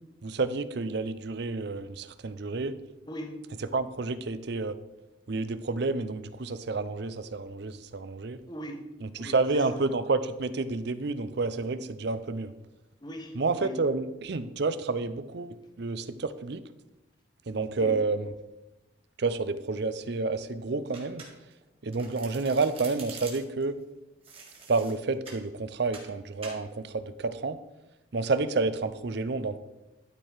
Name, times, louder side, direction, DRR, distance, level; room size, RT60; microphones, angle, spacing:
voice 1, 0.2-2.8 3.7-4.8 5.3-8.4 9.0-12.5 13.4-16.6 17.5-18.3 19.2-21.2 21.8-23.8 24.7-27.6 28.1-29.6, right 3 dB, 55° right, 13 dB, 0.5 m, -29 dB
voice 2, 3.1-3.4 8.5-8.9 9.2-9.8 13.0-13.8 17.8-18.0, equal, 20° left, 3 dB, 1.1 m, -40 dB
Domestic sounds home sounds, 20.9-21.6 21.9-23.6 24.2-25.4 25.9-26.1 26.4-26.6, right 4 dB, 30° right, 1.9 m, -45 dB
12.0 x 4.5 x 4.9 m, 1.0 s
head